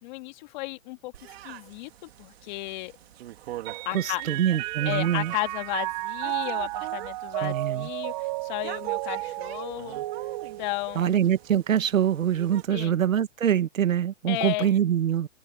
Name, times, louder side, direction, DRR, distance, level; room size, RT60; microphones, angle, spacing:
voice 1, 0.0-1.1 1.4-2.9 3.9-4.2 4.8-10.0 10.6-11.2 12.7-12.9 14.3-14.7, left 21 dB, 35° left, 2.3 m, -34 dB
sound 1, 1.1-12.7, right 14 dB, 50° right, 3.5 m, -44 dB
Mallet percussion, 3.6-11.4, right 19 dB, 30° right, 1.0 m, -33 dB
voice 2, 3.9-5.3 7.4-7.9 11.0-15.3, right 9 dB, 90° right, 1.8 m, -24 dB
hypercardioid pair, 155°, 39 cm